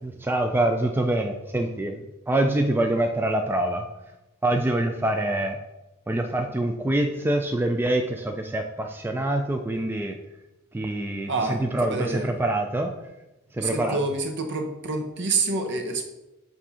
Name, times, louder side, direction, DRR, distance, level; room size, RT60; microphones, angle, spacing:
voice 1, 0.2-3.9 4.4-5.6 6.1-10.2 10.7-12.9 13.5-14.0, right 1 dB, 10° right, 4 dB, 0.3 m, -25 dB
voice 2, 11.3-12.3 13.6-16.0, right 3 dB, 55° right, 5 dB, 0.8 m, -27 dB
7.3 x 2.7 x 5.5 m, 0.97 s
head